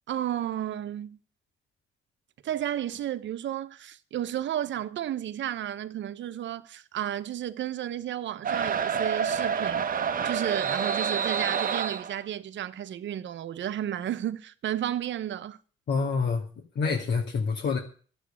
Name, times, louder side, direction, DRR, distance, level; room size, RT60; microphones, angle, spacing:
voice 1, 0.1-1.2 2.4-9.9 10.2-15.6, right 11 dB, 70° right, 1.1 m, -32 dB
sound 1, 8.4-12.2, right 7 dB, 45° right, 1.1 m, -28 dB
voice 2, 15.9-16.4 16.8-17.8, left 5 dB, 60° left, 2.4 m, -26 dB
12.0 x 8.2 x 8.7 m
cardioid pair, 90°, 20 cm